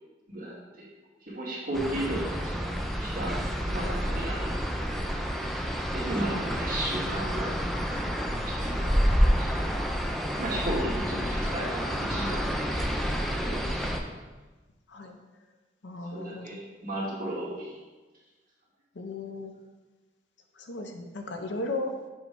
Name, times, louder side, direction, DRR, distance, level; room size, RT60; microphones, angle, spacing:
voice 1, 0.3-0.9 1.2-2.8 3.0-3.4 3.6-4.8 5.9-7.9 8.5-9.0 9.4-9.5 10.4-12.8 13.1-14.0 16.1-17.8, right 1 dB, 50° right, -6 dB, 2.1 m, -35 dB
sound 1, 1.7-14.0, equal, ahead, 0.4 m, -29 dB
voice 2, 6.2-6.6 9.1-9.7 11.1-11.3 13.8-13.9 14.9-15.2 15.8-16.6 18.9-19.5 20.6-21.9, left 2 dB, 70° left, 4 dB, 0.7 m, -37 dB
7.5 x 3.2 x 4.6 m, 1.2 s
head